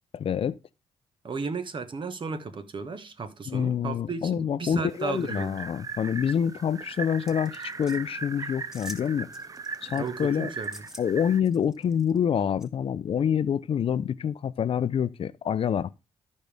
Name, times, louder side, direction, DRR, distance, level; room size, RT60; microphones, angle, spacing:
voice 1, 0.1-0.6 3.5-9.3 9.8-10.5 11.0-15.9, left 8 dB, 55° left, 0.6 m, -27 dB
voice 2, 1.2-5.6 10.0-10.7, right 4 dB, 45° right, 1.4 m, -34 dB
sound 1, 4.9-11.4, right 4 dB, 30° right, 0.6 m, -38 dB
sound 2, 7.3-8.0 8.7-9.1 9.3-10.1 10.6-11.0 11.4-12.2 12.6-12.7, equal, 5° right, 1.4 m, -45 dB
13.5 x 5.4 x 3.4 m
cardioid pair, 80°, 11 cm